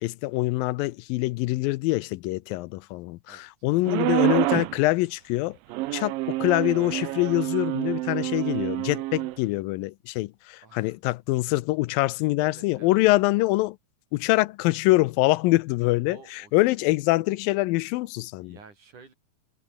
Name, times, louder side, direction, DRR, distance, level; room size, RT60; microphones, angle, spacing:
voice 1, 0.0-5.6 5.9-6.1 6.4-13.8 14.1-16.2 16.5-18.6, left 20 dB, 85° left, 2.4 m, -24 dB
sound 1, 3.9-4.8 5.7-9.4, right 17 dB, 85° right, 2.5 m, -27 dB
voice 2, 10.6-11.0 12.1-13.2 16.1-16.5 18.4-19.1, right 5 dB, 60° right, 6.2 m, -50 dB
omnidirectional pair, 4.0 m